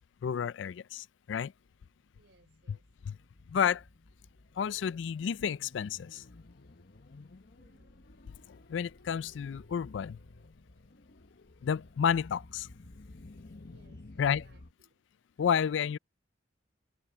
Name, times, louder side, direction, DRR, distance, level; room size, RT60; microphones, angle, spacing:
voice 1, 0.2-1.5 2.7-2.8 3.1-3.2 3.5-3.8 4.6-6.2 8.5-10.2 11.6-12.7 14.2-14.5 15.4-16.0, left 7 dB, 70° left, 0.3 m, -31 dB
sound 1, 1.6-14.7, left 2 dB, 55° left, 0.9 m, -54 dB
voice 2, 2.1-2.9 7.5-8.1 10.7-10.9 13.7-15.0, right 2 dB, 65° right, 5.5 m, -67 dB
head